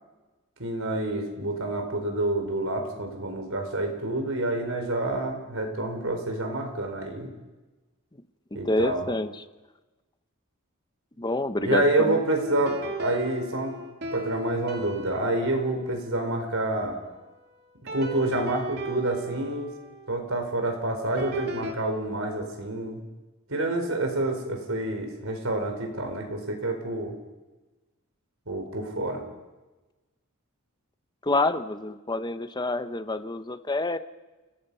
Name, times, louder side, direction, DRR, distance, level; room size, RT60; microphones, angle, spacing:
voice 1, 0.6-7.3 8.5-9.0 11.6-13.7 14.1-17.0 17.9-19.7 20.1-23.0 23.5-27.1 28.5-29.2, right 2 dB, 70° right, 4 dB, 4.5 m, -28 dB
voice 2, 8.6-9.4 11.2-12.2 31.2-34.0, left 2 dB, 20° left, 10 dB, 0.7 m, -27 dB
sound 1, 12.4-17.2 17.9-21.7, right 1 dB, 50° right, 2.4 m, -38 dB
29.5 x 17.5 x 5.5 m, 1.2 s
head